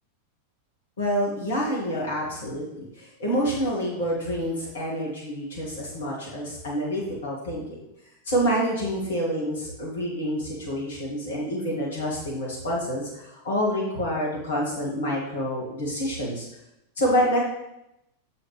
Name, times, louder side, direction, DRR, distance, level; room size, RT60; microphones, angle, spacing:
voice 1, 1.0-7.8 8.3-16.5 17.0-17.4, equal, 65° left, -4 dB, 2.1 m, -27 dB
6.4 x 5.5 x 3.4 m, 0.85 s
figure-of-eight pair, 90°, 0 cm